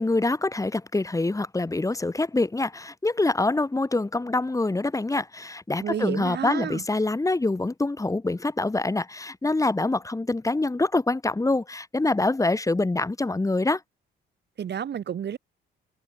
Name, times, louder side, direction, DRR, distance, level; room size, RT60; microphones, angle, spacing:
voice 1, 0.0-13.8, left 2 dB, 15° left, 2.5 m, -25 dB
voice 2, 5.8-6.8 14.6-15.4, right 9 dB, 60° right, 7.6 m, -30 dB
cardioid pair, 90°, 20 cm